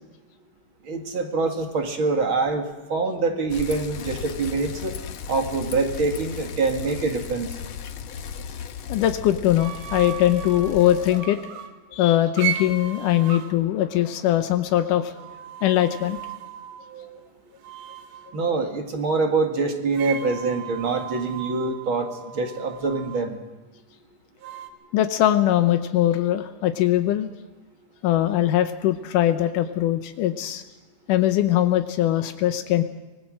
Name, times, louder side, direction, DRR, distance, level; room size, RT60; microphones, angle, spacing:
voice 1, 0.9-4.9 5.3-7.5 18.3-23.4, right 3 dB, 45° right, 4 dB, 2.4 m, -25 dB
Bicycle, 3.5-11.2, left 7 dB, 65° left, 1.3 m, -36 dB
voice 2, 8.9-11.4 11.9-15.1 15.6-16.2 24.9-27.3 28.0-30.6 31.1-32.8, left 13 dB, 85° left, 8 dB, 2.4 m, -21 dB
sound 1, 9.6-11.7 12.4-13.5 15.1-17.3 17.6-18.4 19.9-23.3 24.4-24.7, right 10 dB, 90° right, 3.0 m, -35 dB
24.5 x 20.0 x 6.3 m, 1.2 s
omnidirectional pair, 3.6 m